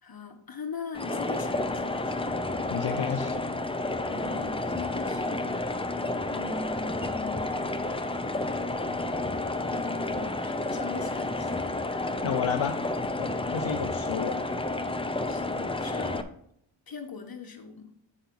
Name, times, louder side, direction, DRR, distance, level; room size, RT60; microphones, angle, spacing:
voice 1, 0.0-2.2 4.1-5.7 6.3-7.6 9.7-12.0 13.5-13.6 15.2-16.3 16.9-17.9, left 4 dB, 50° left, 4 dB, 1.3 m, -40 dB
sound 1, 0.9-16.2, left 2 dB, 10° left, 0.6 m, -31 dB
voice 2, 2.7-3.3 12.2-12.8 13.2-14.4, left 8 dB, 75° left, 2 dB, 0.8 m, -31 dB
8.4 x 5.6 x 3.9 m, 0.71 s
wide cardioid pair, 95°, 48 cm